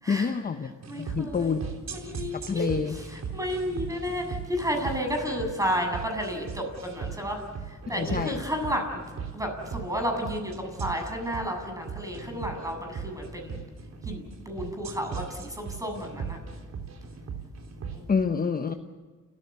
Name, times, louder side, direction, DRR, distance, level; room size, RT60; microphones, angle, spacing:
voice 1, 0.1-0.7 1.0-1.7 2.3-3.0 7.9-8.4 18.1-18.7, left 5 dB, 30° left, 7 dB, 1.1 m, -27 dB
sound 1, 0.8-18.0, right 6 dB, 60° right, 3.8 m, -38 dB
voice 2, 0.9-1.4 1.9-2.7 3.3-7.4 7.9-9.0 9.3-13.6 14.1-16.4 17.9-18.1, equal, 10° right, 3 dB, 7.8 m, -32 dB
30.0 x 15.5 x 8.4 m, 1.4 s
cardioid pair, 90°, 30 cm